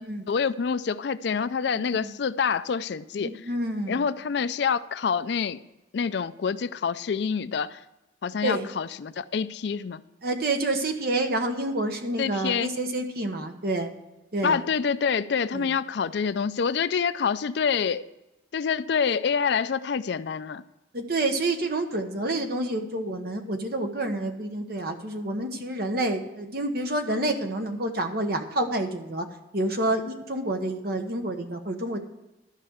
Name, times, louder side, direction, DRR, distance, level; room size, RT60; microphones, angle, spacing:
voice 1, 0.3-3.4 3.9-5.6 5.9-7.8 8.2-10.0 12.2-12.7 14.4-18.0 18.5-20.6, left 6 dB, 60° left, 15 dB, 0.4 m, -27 dB
voice 2, 1.7-2.1 3.2-4.0 8.4-8.7 10.2-13.9 14.3-14.6 15.5-15.7 20.9-29.2 29.5-32.0, right 2 dB, 50° right, 5 dB, 1.1 m, -28 dB
12.5 x 5.4 x 7.9 m, 0.99 s
head